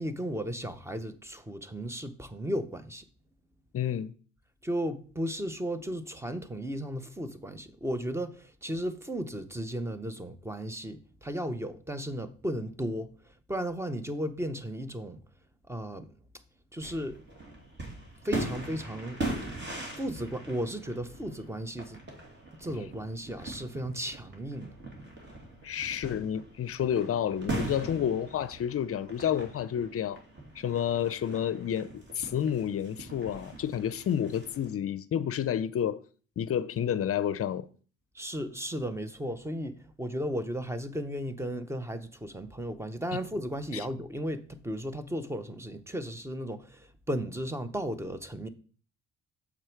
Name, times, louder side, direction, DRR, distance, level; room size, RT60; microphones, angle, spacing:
voice 1, 0.0-3.0 4.6-13.1 13.5-15.2 15.7-16.1 16.7-17.2 18.2-19.2 20.0-22.0 22.6-24.7 38.1-48.5, equal, 10° right, 0.8 m, -35 dB
voice 2, 3.7-4.1 25.6-30.2 30.5-36.0 36.4-37.7 43.7-43.8, left 9 dB, 50° left, 0.5 m, -30 dB
sound 1, 16.8-34.7, right 2 dB, 35° right, 2.4 m, -41 dB
7.1 x 4.7 x 4.5 m
cardioid pair, 90°, 30 cm